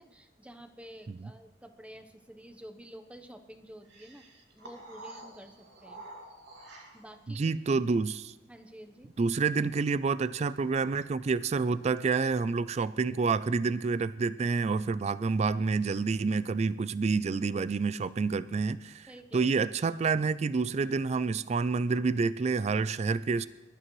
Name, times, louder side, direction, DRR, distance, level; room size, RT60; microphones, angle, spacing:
voice 1, 0.0-4.2 4.6-6.1 6.9-7.5 8.5-9.1 19.1-19.5, equal, 5° right, 7 dB, 1.0 m, -50 dB
sound 1, 3.9-7.2, right 2 dB, 90° right, 2.5 m, -49 dB
voice 2, 7.3-8.3 9.2-23.5, right 4 dB, 40° right, 16 dB, 0.3 m, -28 dB
22.0 x 12.0 x 3.2 m, 1.1 s
head